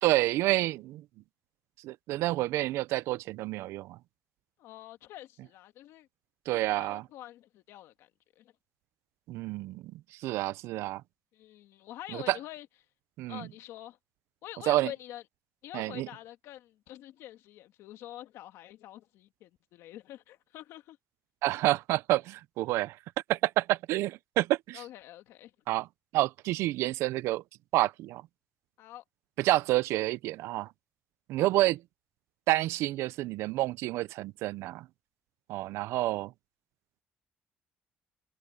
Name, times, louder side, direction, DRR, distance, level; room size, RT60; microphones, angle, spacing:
voice 1, 0.0-1.0 1.8-4.0 6.5-7.0 9.3-9.8 10.2-11.0 12.1-12.4 13.2-13.5 14.7-14.9 15.7-16.1 21.4-23.0 23.3-24.8 25.7-25.9 26.1-27.4 27.7-28.2 29.4-30.7 31.3-31.8 32.5-34.9 35.5-36.3, right 17 dB, 85° right, 0.5 m, -28 dB
voice 2, 4.6-6.1 6.6-8.1 8.3-8.5 11.3-12.7 13.3-14.0 14.4-15.2 15.6-21.0 24.7-25.5 28.8-29.0 31.4-31.5, left 13 dB, 85° left, 1.7 m, -46 dB
cardioid pair, 85°, 4 cm